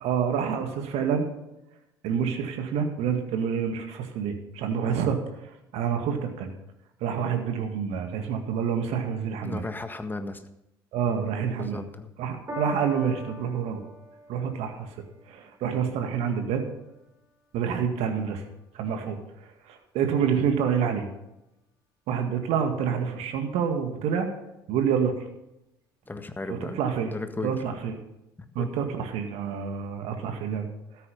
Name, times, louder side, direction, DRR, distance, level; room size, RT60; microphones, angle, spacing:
voice 1, 0.0-1.3 2.0-6.5 7.0-9.6 10.9-11.8 12.2-13.8 14.3-14.9 15.3-16.6 17.5-18.4 18.7-21.1 22.1-24.3 24.7-25.1 26.6-27.1 27.4-28.0 28.6-30.7, right 7 dB, 60° right, 6 dB, 2.0 m, -28 dB
voice 2, 9.4-10.4 11.6-12.1 26.1-26.8 27.1-27.5 28.6-28.7, left 2 dB, 15° left, 8 dB, 1.6 m, -35 dB
Piano, 12.5-19.1 19.9-20.0, equal, 25° right, 4.8 m, -43 dB
13.5 x 9.6 x 5.5 m, 0.88 s
figure-of-eight pair, 60°, 12 cm